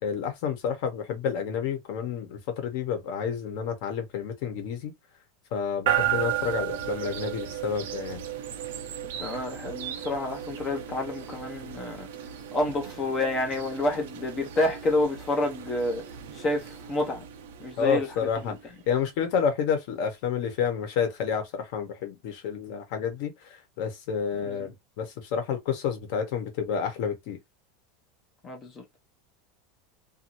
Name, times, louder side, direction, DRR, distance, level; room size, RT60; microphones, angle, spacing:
voice 1, 0.0-4.9 5.5-8.2 17.8-18.6 18.9-27.4, left 7 dB, 50° left, 1.0 m, -29 dB
sound 1, 5.9-18.8, right 11 dB, 80° right, 0.6 m, -34 dB
voice 2, 9.2-12.1 12.5-17.2 17.6-18.6 24.4-24.7 28.4-28.8, left 2 dB, 20° left, 0.6 m, -29 dB
2.6 x 2.6 x 2.8 m
supercardioid pair, 175°, 0 cm